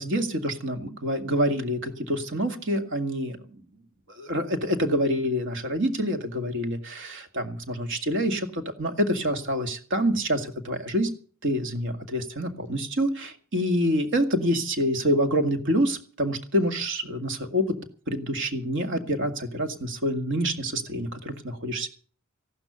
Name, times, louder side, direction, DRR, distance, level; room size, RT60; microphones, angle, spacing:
voice 1, 0.0-3.6 4.1-11.1 11.4-17.6 18.1-21.9, equal, 60° right, 7 dB, 2.1 m, -27 dB
15.0 x 12.0 x 6.9 m, 0.43 s
head